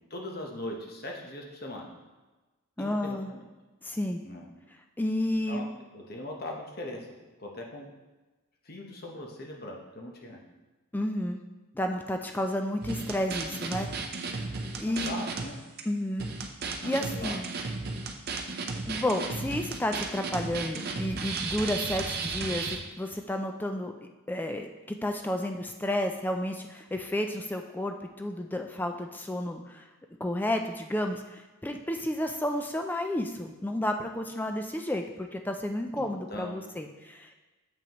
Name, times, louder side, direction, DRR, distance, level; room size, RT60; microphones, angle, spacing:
voice 1, 0.1-1.9 2.8-3.4 4.2-4.5 5.5-5.7 5.9-7.1 7.4-7.9 8.6-10.4 14.9-15.6 16.8-17.4 36.0-36.6, left 1 dB, 45° left, 0 dB, 1.0 m, -40 dB
voice 2, 2.8-3.3 3.8-4.2 5.0-5.6 10.9-11.4 11.7-13.9 14.4-15.1 15.9-16.3 16.8-17.5 18.9-22.7 23.0-23.9 24.3-29.8 30.2-37.4, left 1 dB, 10° left, 4 dB, 0.3 m, -31 dB
sound 1, 12.8-15.5 15.8-15.9 16.2-22.8, right 4 dB, 45° right, 0.5 m, -34 dB
7.0 x 5.8 x 3.0 m, 1.2 s
head